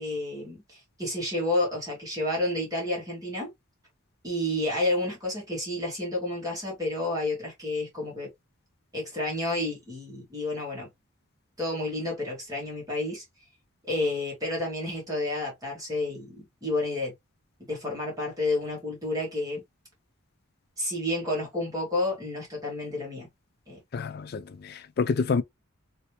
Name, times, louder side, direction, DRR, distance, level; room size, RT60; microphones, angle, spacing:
voice 1, 0.0-3.5 4.2-8.3 8.9-10.9 11.6-13.2 13.9-17.1 17.7-19.6 20.8-23.3 23.7-23.8, left 1 dB, 15° right, 1.6 m, -30 dB
voice 2, 23.9-25.4, left 5 dB, 45° left, 0.3 m, -28 dB
3.1 x 2.9 x 3.1 m
head